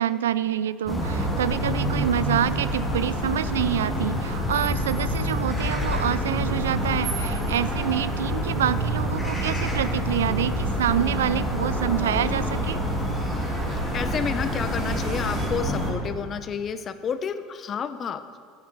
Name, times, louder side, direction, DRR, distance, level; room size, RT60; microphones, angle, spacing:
voice 1, 0.0-12.8, right 10 dB, 80° right, 16 dB, 0.3 m, -27 dB
sound 1, 0.8-15.9, equal, 15° left, 3.2 m, -27 dB
sound 2, 2.6-15.5, right 2 dB, 45° right, 3.3 m, -40 dB
voice 2, 13.7-18.2, left 7 dB, 40° left, 12 dB, 0.7 m, -30 dB
12.5 x 8.1 x 4.8 m, 2.1 s
hypercardioid pair, 75°, 0 cm